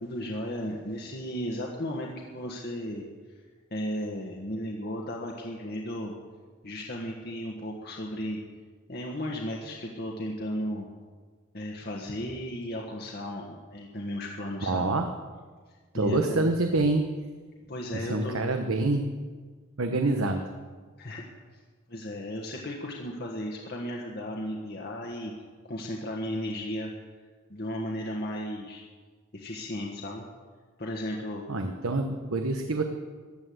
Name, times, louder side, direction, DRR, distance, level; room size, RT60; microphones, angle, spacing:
voice 1, 0.0-3.4 3.7-6.1 6.6-8.4 8.9-10.9 11.5-14.9 15.9-16.4 17.7-18.4 21.0-21.6 21.9-25.3 25.6-26.9 27.5-28.8 29.3-30.2 30.8-31.4, equal, 45° left, -1 dB, 1.5 m, -35 dB
voice 2, 14.6-15.1 15.9-17.0 18.1-19.0 19.8-20.4 31.5-32.8, right 2 dB, 80° right, 5 dB, 1.1 m, -26 dB
15.5 x 10.5 x 7.9 m, 1.5 s
head